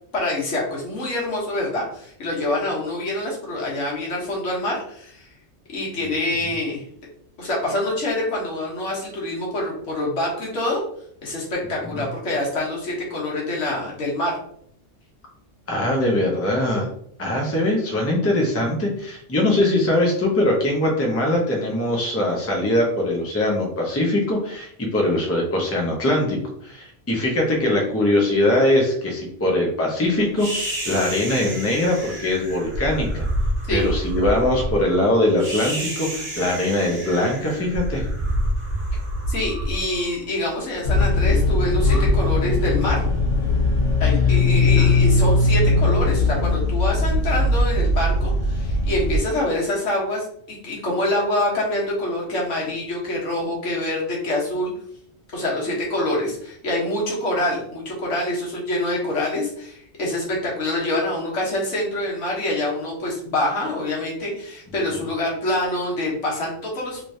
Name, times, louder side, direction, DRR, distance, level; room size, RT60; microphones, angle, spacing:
voice 1, 0.1-5.3 5.7-6.8 7.4-10.8 11.2-14.4 33.7-33.9 39.3-43.1 44.0-54.7 55.3-67.0, left 1 dB, 85° left, -3 dB, 1.5 m, -25 dB
voice 2, 15.7-16.9 17.2-33.2 33.7-38.0 44.8-44.9, left 1 dB, 15° left, -1 dB, 0.5 m, -22 dB
sound 1, 30.4-40.7, right 1 dB, 60° right, 1.1 m, -28 dB
sound 2, 40.8-49.2, left 2 dB, 50° left, 1.3 m, -19 dB
3.2 x 3.1 x 2.7 m, 0.67 s
omnidirectional pair, 1.2 m